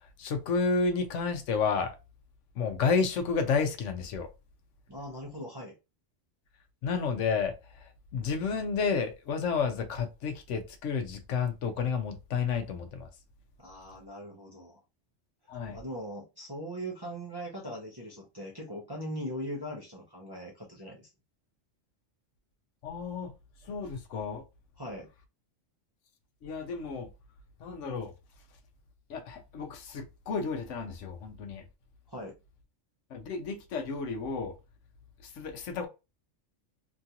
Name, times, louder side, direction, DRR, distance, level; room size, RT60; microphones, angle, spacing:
voice 1, 0.2-2.0 2.6-4.3 6.8-7.5 8.1-13.1 15.5-15.8 22.8-23.3 23.7-24.4 26.4-27.1 27.6-28.1 29.1-31.6 33.1-34.5 35.4-35.9, left 5 dB, 75° left, 1.0 m, -31 dB
voice 2, 4.9-5.8 13.6-14.8 15.7-21.1 24.8-25.1 32.1-32.3, equal, 25° right, 0.5 m, -40 dB
3.0 x 2.4 x 2.7 m
omnidirectional pair, 1.3 m